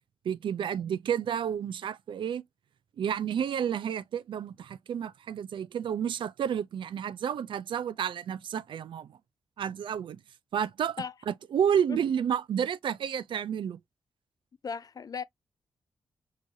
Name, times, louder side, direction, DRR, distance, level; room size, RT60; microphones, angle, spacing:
voice 1, 0.2-2.4 3.0-9.2 9.6-10.2 10.5-13.8, right 8 dB, 65° right, 0.3 m, -30 dB
voice 2, 14.6-15.2, left 6 dB, 45° left, 0.3 m, -36 dB
4.7 x 2.5 x 2.6 m
supercardioid pair, 45°, 9 cm